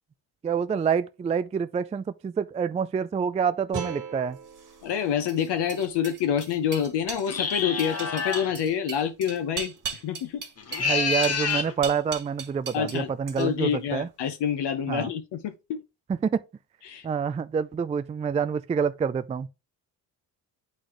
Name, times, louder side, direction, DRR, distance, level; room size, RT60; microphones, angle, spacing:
voice 1, 0.4-4.4 10.8-14.1 14.9-15.1 16.1-16.4 17.0-19.5, right 6 dB, 20° right, 0.3 m, -27 dB
sound 1, 3.7-6.8, right 5 dB, 75° right, 1.9 m, -40 dB
sound 2, 4.5-13.0 13.3-13.7, right 5 dB, 45° right, 1.8 m, -39 dB
voice 2, 4.8-10.4 12.7-13.1 13.4-15.8 16.9-17.1, left 8 dB, 70° left, 0.9 m, -27 dB
sound 3, 7.3-8.5 10.6-11.7, left 5 dB, 35° left, 1.1 m, -27 dB
7.7 x 4.2 x 3.2 m
supercardioid pair, 75°, 43 cm